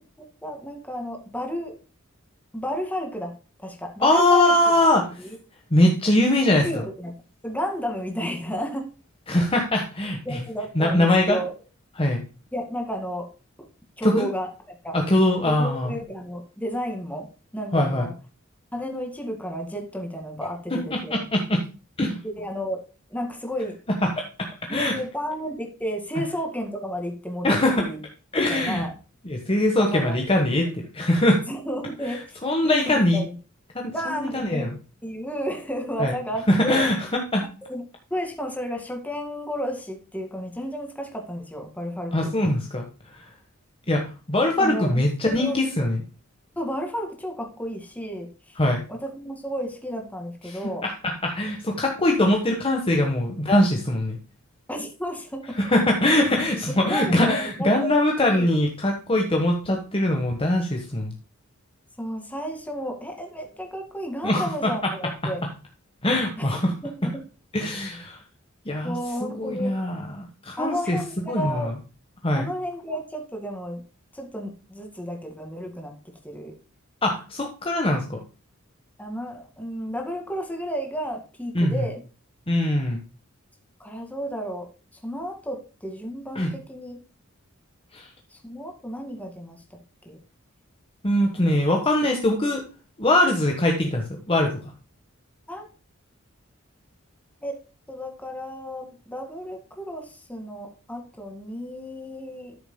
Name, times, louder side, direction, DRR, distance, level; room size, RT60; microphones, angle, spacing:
voice 1, 0.4-1.7 2.5-3.3 3.6-4.5 5.2-5.4 6.6-7.1 7.4-8.9 10.3-11.5 12.5-13.3 13.6-13.7 14.0-14.9 15.4-17.3 17.5-18.1 18.7-21.2 22.2-22.8 23.1-23.8 24.7-28.0 28.5-28.9 29.8-30.2 31.5-32.2 32.6-33.4 33.9-34.7 35.0-36.8 37.6-37.8 38.1-42.3 44.6-45.9 46.6-48.5 48.9-50.8 54.7-55.6 56.8-58.5 62.0-65.4 66.4-66.5 66.8-67.2 68.8-69.8 70.6-71.7 72.3-73.8 74.1-75.9 76.2-76.5 79.0-82.0 83.8-84.7 85.0-87.0 88.3-89.6 90.1-90.2 91.4-91.6 95.5-95.7 97.4-97.6 97.9-102.6, equal, 5° left, 2 dB, 2.0 m, -32 dB
voice 2, 4.0-5.1 5.7-6.7 9.3-10.4 10.7-11.4 12.0-12.2 14.0-14.3 14.9-16.0 17.7-18.1 20.4-21.6 22.0-22.2 24.0-25.0 27.4-27.9 28.3-28.8 29.2-31.4 32.4-33.2 33.7-34.7 36.0-36.1 36.5-37.5 42.1-42.9 43.9-46.0 48.6-48.8 50.5-54.2 55.6-61.1 64.2-64.9 66.0-66.7 67.5-68.2 68.6-68.9 69.2-71.0 71.3-71.7 72.2-72.5 77.0-78.2 81.5-81.8 82.5-83.0 86.3-86.5 87.9-88.1 91.0-92.6 93.0-94.6, left 1 dB, 25° left, 2 dB, 1.3 m, -22 dB
12.5 x 7.0 x 2.2 m, 0.33 s
head